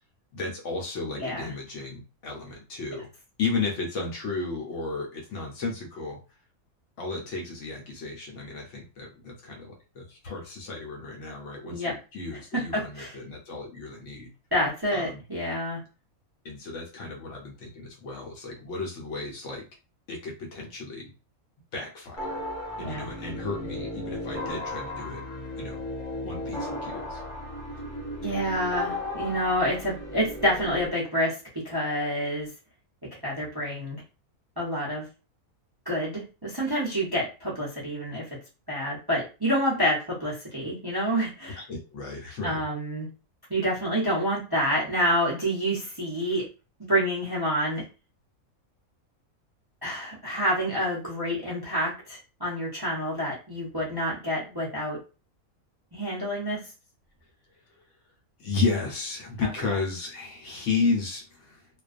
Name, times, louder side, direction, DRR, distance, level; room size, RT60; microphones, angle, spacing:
voice 1, 0.3-3.1 3.4-6.2 7.0-14.3 14.9-15.2 16.4-19.7 20.1-21.1 21.7-22.5 22.8-25.2 25.6-25.8 26.2-27.2 41.6-42.6 58.4-61.7, left 4 dB, 65° left, 0 dB, 0.9 m, -33 dB
voice 2, 1.2-1.5 11.7-12.0 12.5-13.1 14.5-15.8 22.8-23.1 28.2-32.5 33.2-34.0 34.6-35.1 35.9-38.3 38.7-41.6 42.4-43.1 43.5-46.5 46.9-47.8 49.8-55.0 55.9-56.6 59.4-59.5, equal, 30° right, -6 dB, 0.4 m, -28 dB
sound 1, 22.2-30.9, left 1 dB, 30° left, 0.9 m, -35 dB
2.4 x 2.2 x 2.4 m, 0.32 s
omnidirectional pair, 1.5 m